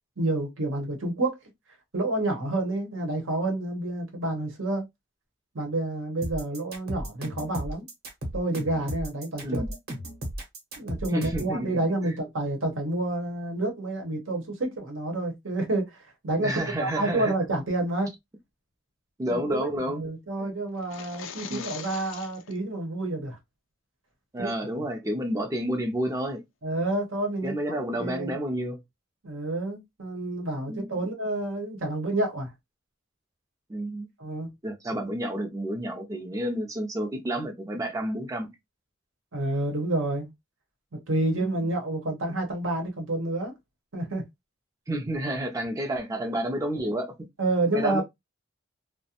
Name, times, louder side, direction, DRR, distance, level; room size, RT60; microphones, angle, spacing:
voice 1, 0.2-1.4 1.9-4.8 5.5-7.8 8.3-9.6 10.8-18.1 19.3-19.6 19.9-23.4 24.4-24.5 26.6-27.5 28.0-28.4 29.2-32.5 34.2-34.5 39.3-40.3 41.1-43.5 43.9-44.2 47.4-48.0, right 2 dB, 80° right, 0.9 m, -29 dB
sound 1, 6.2-11.5, equal, 50° right, 0.9 m, -35 dB
voice 2, 11.1-11.7 12.0-12.1 16.4-17.3 19.2-20.0 20.4-20.5 21.5-21.6 24.3-26.4 27.4-28.8 30.7-30.9 33.7-34.1 34.6-38.5 41.4-41.6 44.9-47.1 47.7-48.0, right 1 dB, 15° right, 0.4 m, -30 dB
sound 2, 20.8-22.6, left 7 dB, 75° left, 0.4 m, -41 dB
2.4 x 2.1 x 2.7 m
head